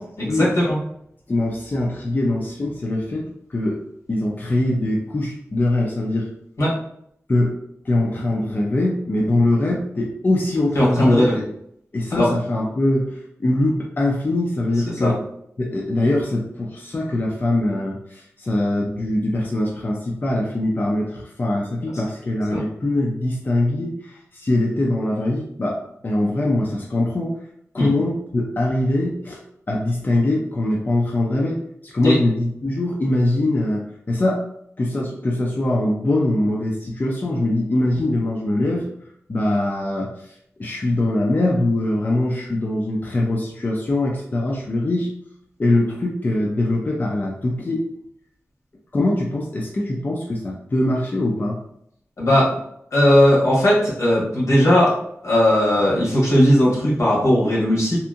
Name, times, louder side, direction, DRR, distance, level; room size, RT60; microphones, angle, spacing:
voice 1, 0.2-0.8 6.6-6.7 10.7-11.4 12.1-12.3 15.0-15.1 22.5-22.6 27.8-27.9 32.0-32.1 52.2-52.5 52.9-54.9 55.2-58.0, equal, 75° left, -5 dB, 1.1 m, -17 dB
voice 2, 1.3-3.8 4.1-6.3 7.3-7.6 7.8-11.4 11.9-15.2 15.6-25.8 26.0-27.3 27.7-29.4 29.7-31.6 31.8-34.4 34.8-38.8 39.3-40.3 40.6-45.1 45.6-47.8 48.9-51.6, left 1 dB, 35° left, -3 dB, 0.4 m, -22 dB
2.7 x 2.5 x 2.4 m, 0.71 s
wide cardioid pair, 115°, 5 cm